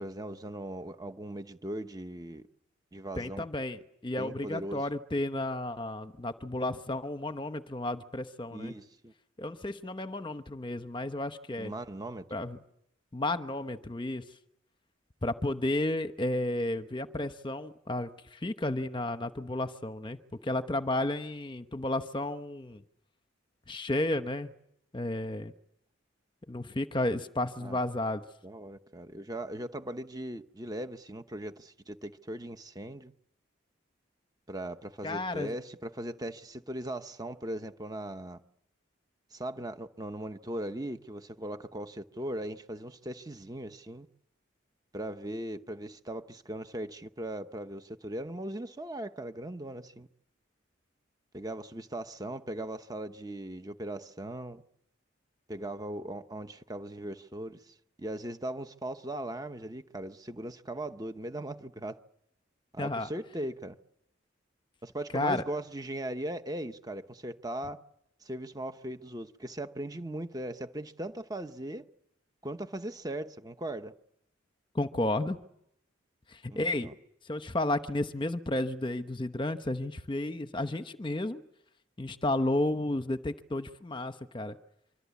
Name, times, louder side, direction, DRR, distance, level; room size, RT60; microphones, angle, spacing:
voice 1, 0.0-2.4 2.9-3.4 4.2-4.8 8.5-9.1 11.6-12.3 27.6-27.8 28.4-33.1 34.5-38.4 39.3-44.1 44.9-50.1 51.3-54.6 55.5-62.0 62.7-63.8 64.8-67.8 68.2-71.9 72.4-73.9 76.5-76.9, right 1 dB, 20° right, 1.0 m, -39 dB
voice 2, 3.2-8.7 9.4-11.7 12.3-12.6 13.1-14.2 15.2-22.8 23.7-24.5 24.9-25.5 26.5-28.2 35.0-35.6 62.8-63.1 65.1-65.4 74.7-75.4 76.3-76.9 77.2-81.4 82.0-84.6, left 1 dB, 25° left, 1.0 m, -32 dB
25.5 x 25.0 x 8.4 m
head